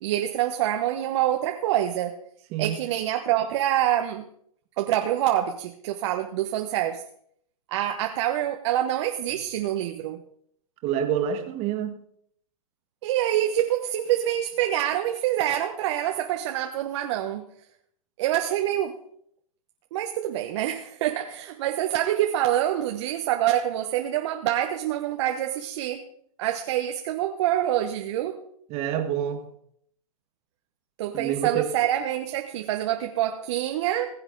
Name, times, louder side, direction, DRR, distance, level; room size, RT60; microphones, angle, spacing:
voice 1, 0.0-2.1 2.6-4.2 4.8-7.0 7.7-10.2 13.0-17.4 18.2-19.0 19.9-26.0 26.4-28.3 31.0-34.1, right 12 dB, 50° right, 1.1 m, -26 dB
voice 2, 10.8-12.0 28.7-29.5 31.1-31.6, right 9 dB, 35° right, 2.0 m, -27 dB
20.0 x 8.0 x 3.9 m
hypercardioid pair, 130°, 19 cm